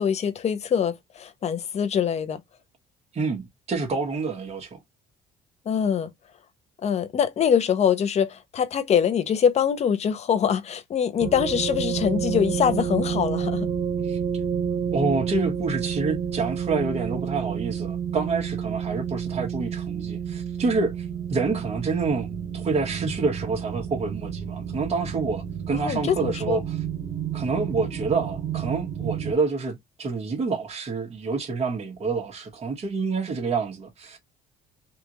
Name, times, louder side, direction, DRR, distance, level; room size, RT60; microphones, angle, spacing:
voice 1, 0.0-2.4 5.7-6.1 6.8-13.7 25.7-26.6, left 8 dB, 40° left, 0.7 m, -24 dB
voice 2, 3.1-4.8 14.1-14.2 14.9-22.3 22.5-26.8 27.3-34.2, right 4 dB, 40° right, 1.5 m, -28 dB
sound 1, 11.2-29.3, right 8 dB, 75° right, 1.0 m, -30 dB
3.5 x 2.5 x 2.9 m
cardioid pair, 110°, 17 cm